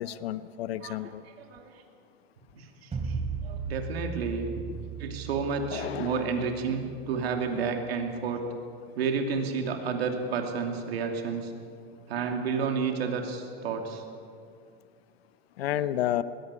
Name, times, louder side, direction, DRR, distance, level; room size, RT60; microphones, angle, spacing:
voice 1, 0.0-1.2 4.7-4.8 5.7-6.3 7.5-7.8 15.6-16.2, left 12 dB, 90° left, 15 dB, 0.9 m, -31 dB
voice 2, 0.8-1.1 1.4-1.7 2.5-4.6 5.0-8.4 9.0-11.5 12.1-14.0, right 5 dB, 90° right, 4 dB, 2.7 m, -31 dB
sound 1, 2.9-7.9, right 5 dB, 20° right, 3.5 m, -37 dB
21.0 x 16.0 x 9.7 m, 2.3 s
supercardioid pair, 110°, 30 cm